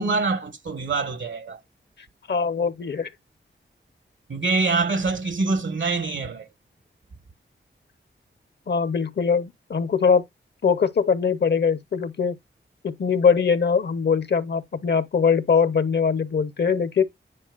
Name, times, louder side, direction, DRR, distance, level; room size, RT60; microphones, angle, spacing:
voice 1, 0.0-1.6 4.3-6.5, right 3 dB, 70° right, 1.2 m, -25 dB
voice 2, 2.3-3.1 8.7-10.2 10.6-12.4 12.8-17.0, left 6 dB, 60° left, 0.7 m, -22 dB
10.0 x 4.3 x 2.3 m
wide cardioid pair, 65°, 20 cm